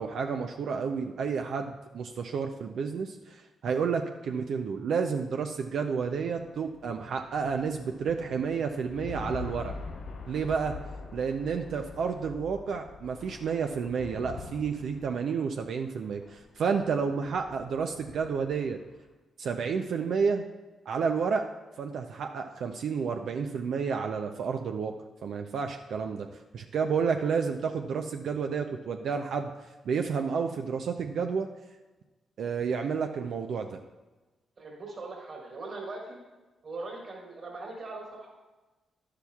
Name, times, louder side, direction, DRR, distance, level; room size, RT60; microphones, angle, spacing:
voice 1, 0.0-9.8 10.3-10.8 11.1-18.8 19.4-20.5 20.9-21.5 21.8-24.9 25.2-26.3 26.5-29.5 29.9-31.5 32.4-33.8, right 6 dB, 75° right, 5 dB, 0.5 m, -30 dB
sound 1, 5.6-19.1, left 4 dB, 70° left, 1.8 m, -45 dB
voice 2, 34.6-36.2 36.6-38.3, right 2 dB, 55° right, -2 dB, 3.4 m, -40 dB
11.5 x 11.0 x 2.4 m, 1.2 s
supercardioid pair, 60°, 0 cm